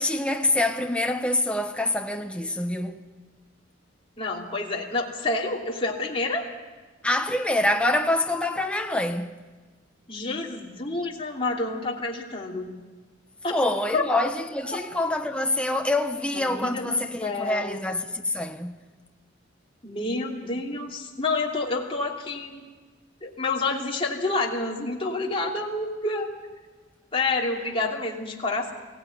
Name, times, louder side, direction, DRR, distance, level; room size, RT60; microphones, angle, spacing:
voice 1, 0.0-3.0 7.0-9.4 13.5-18.9, left 1 dB, 5° left, 1.0 m, -26 dB
voice 2, 4.2-6.5 10.1-12.7 13.4-13.6 13.9-14.0 16.3-17.8 19.8-22.7 23.2-26.3 27.1-28.7, left 3 dB, 30° left, 3.0 m, -28 dB
22.0 x 17.0 x 9.5 m
head